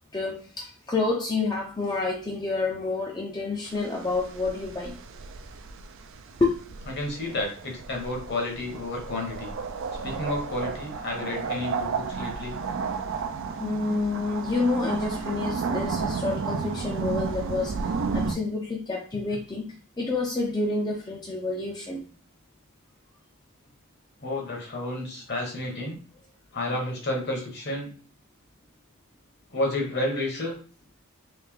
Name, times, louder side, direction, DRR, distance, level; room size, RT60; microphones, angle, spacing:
voice 1, 0.1-5.0 6.4-6.5 13.6-17.8 18.1-22.0, left 3 dB, 20° left, -2 dB, 0.5 m, -28 dB
sound 1, 3.7-18.4, right 5 dB, 60° right, 0.4 m, -33 dB
voice 2, 7.0-9.5 10.0-12.6 24.2-26.0 26.5-27.9 29.5-30.6, left 1 dB, 50° left, 1 dB, 1.1 m, -31 dB
3.2 x 2.7 x 3.6 m, 0.42 s
head